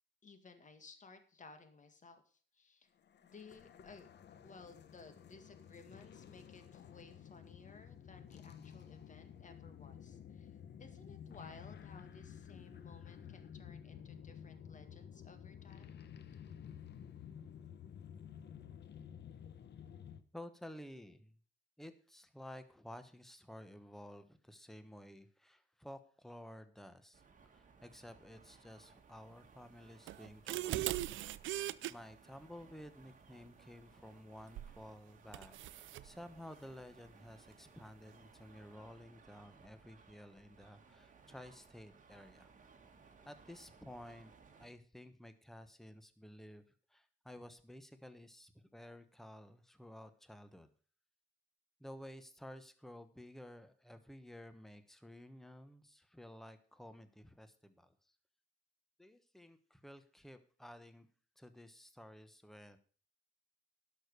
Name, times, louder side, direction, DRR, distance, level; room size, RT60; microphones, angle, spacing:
voice 1, 0.2-2.9 3.2-16.0, left 4 dB, 40° left, 8 dB, 2.1 m, -58 dB
sound 1, 3.0-20.2, left 8 dB, 60° left, 1.0 m, -53 dB
voice 2, 20.3-21.4 21.8-27.2 27.5-31.0 31.9-42.5 43.2-44.3 44.6-46.6 46.9-50.7 51.8-57.9 59.0-61.1 61.4-62.8, left 1 dB, ahead, 11 dB, 1.1 m, -53 dB
sound 2, 27.1-44.7, right 5 dB, 40° right, 2.1 m, -63 dB
sound 3, 30.1-31.9 34.6-34.8 35.3-36.1, right 15 dB, 85° right, 0.5 m, -39 dB
11.5 x 6.5 x 6.7 m, 0.42 s
cardioid pair, 95°, 20 cm